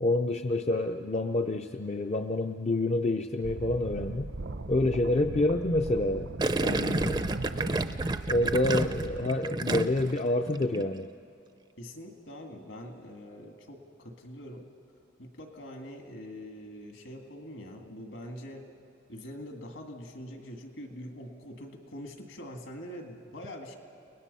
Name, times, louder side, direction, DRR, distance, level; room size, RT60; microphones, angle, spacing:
voice 1, 0.0-4.3 4.7-6.3 6.6-7.3 7.5-7.7 8.3-11.1, left 2 dB, 35° left, 6 dB, 0.4 m, -28 dB
sound 1, 3.4-9.3, right 2 dB, 65° right, 0.7 m, -38 dB
Gurgling, 6.4-10.2 10.5-10.9, right 2 dB, 20° right, 0.5 m, -30 dB
voice 2, 11.8-14.6 15.2-18.7 19.1-23.8, equal, 70° left, 3 dB, 2.3 m, -44 dB
30.0 x 19.5 x 5.5 m, 2.5 s
head